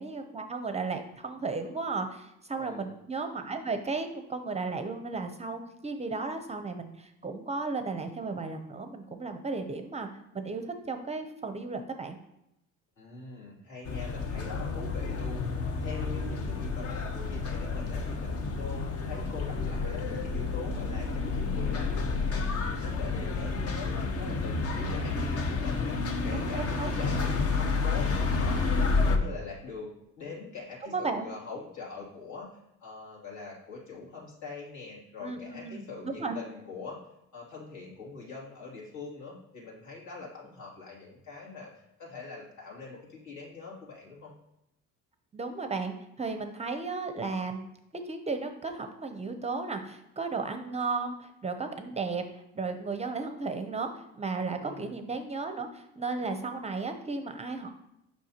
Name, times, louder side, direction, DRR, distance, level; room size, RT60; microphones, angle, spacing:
voice 1, 0.0-10.1 10.3-12.2 26.3-26.9 30.9-31.3 35.2-36.4 45.3-52.2 52.5-57.7, right 4 dB, 20° right, 7 dB, 0.6 m, -34 dB
voice 2, 2.5-2.9 13.0-32.5 32.8-37.0 37.3-44.3 54.6-55.0, left 4 dB, 65° left, -4 dB, 2.7 m, -43 dB
sound 1, 13.9-29.2, left 4 dB, 45° left, 0.8 m, -30 dB
7.5 x 5.7 x 2.9 m, 0.84 s
cardioid pair, 105°, 32 cm